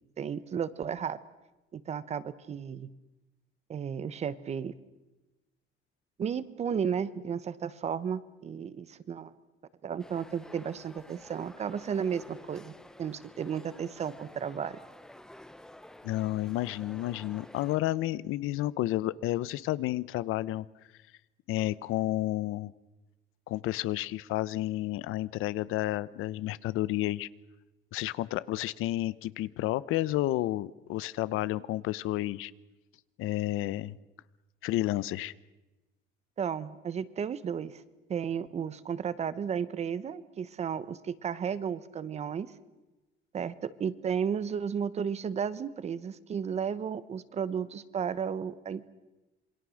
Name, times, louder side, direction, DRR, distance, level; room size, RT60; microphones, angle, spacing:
voice 1, 0.2-1.2 1.7-2.9 3.7-4.7 6.2-9.3 9.8-12.7 13.0-14.8 36.4-37.8 38.1-42.5 43.3-48.9, right 7 dB, 30° right, 16 dB, 0.9 m, -33 dB
sound 1, 10.0-17.8, left 1 dB, 5° left, 0.7 m, -51 dB
voice 2, 16.0-20.7 21.5-22.7 23.5-27.3 27.9-32.5 33.2-34.0 34.6-35.3, left 15 dB, 90° left, 19 dB, 0.8 m, -31 dB
27.0 x 23.5 x 6.4 m, 1.1 s
cardioid pair, 175°, 21 cm